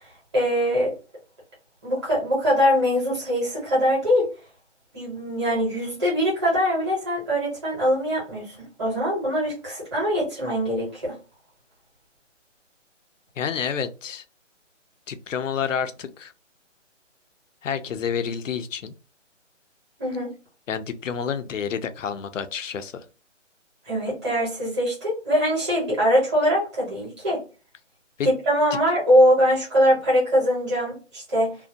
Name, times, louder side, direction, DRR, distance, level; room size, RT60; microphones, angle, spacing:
voice 1, 0.3-0.9 1.8-4.3 4.9-11.1 20.0-20.3 23.8-27.4 28.2-31.6, equal, 25° right, 1.1 m, -22 dB
voice 2, 13.4-14.2 15.1-16.3 17.6-19.0 20.7-23.0 28.2-28.3, left 7 dB, 85° left, 0.6 m, -29 dB
2.7 x 2.0 x 2.7 m
hypercardioid pair, 165°, 37 cm